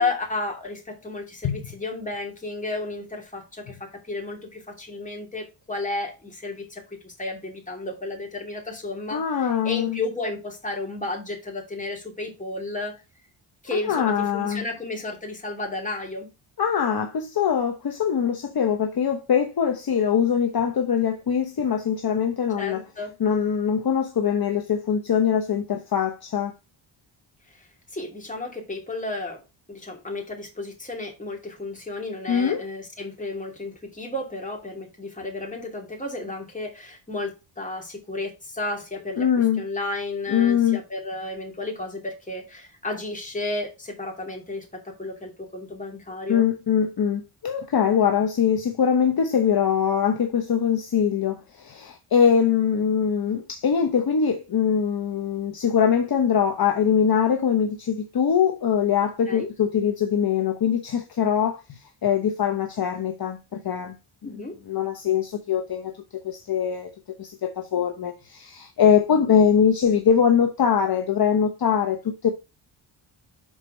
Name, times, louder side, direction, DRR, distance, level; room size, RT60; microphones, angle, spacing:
voice 1, 0.0-12.9 13.6-16.3 22.6-23.1 27.5-29.4 29.7-39.3 39.6-46.4 59.3-59.5 64.2-64.5, left 2 dB, 15° left, 2.7 m, -33 dB
voice 2, 9.1-10.0 13.7-14.6 16.6-22.8 23.2-26.5 32.3-32.6 39.1-39.6 40.3-40.8 46.3-64.0 64.2-64.4 64.7-66.9 67.2-72.3, left 7 dB, 50° left, 1.0 m, -22 dB
6.4 x 4.4 x 5.3 m
cardioid pair, 110°, 48 cm